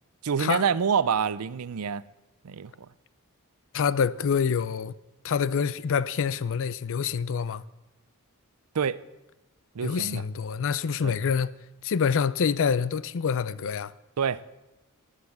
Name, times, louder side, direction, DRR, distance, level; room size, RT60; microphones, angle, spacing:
voice 1, 0.2-2.0 2.4-2.7 8.7-9.0 9.7-10.2 11.0-11.1 14.2-14.4, right 6 dB, 80° right, 0.5 m, -26 dB
voice 2, 3.7-4.9 5.2-7.6 9.8-11.6 11.8-13.9, left 6 dB, 60° left, 0.4 m, -26 dB
18.0 x 8.3 x 7.1 m
head